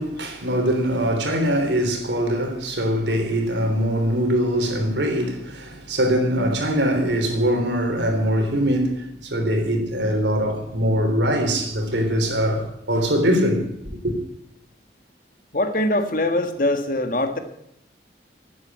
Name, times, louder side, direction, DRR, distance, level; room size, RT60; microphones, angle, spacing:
voice 1, 0.0-14.1, equal, 85° right, 3.6 m, -22 dB
voice 2, 15.5-17.4, left 1 dB, 50° left, 1.6 m, -22 dB
12.0 x 9.2 x 9.3 m
head